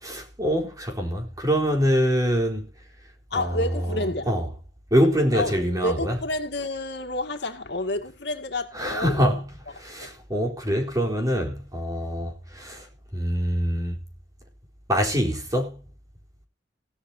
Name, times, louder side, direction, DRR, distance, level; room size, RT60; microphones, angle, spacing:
voice 1, 0.0-2.7 3.3-3.6 3.9-4.5 4.9-6.2 8.7-9.4 9.7-12.8 13.1-14.0 14.9-15.8, equal, 20° right, 4.0 m, -24 dB
voice 2, 3.3-4.3 5.3-9.4 10.0-10.1, left 2 dB, 65° left, 2.3 m, -30 dB
17.0 x 13.0 x 2.8 m
head